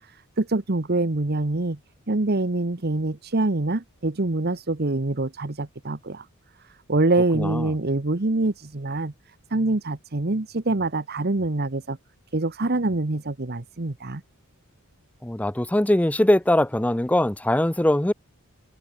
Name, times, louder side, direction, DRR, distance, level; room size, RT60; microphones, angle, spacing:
voice 1, 0.4-1.8 2.1-6.2 6.9-9.1 9.5-12.0 12.3-14.2, right 2 dB, 45° right, 1.1 m, -25 dB
voice 2, 7.3-7.7 15.2-18.1, left 1 dB, 5° left, 0.5 m, -21 dB
head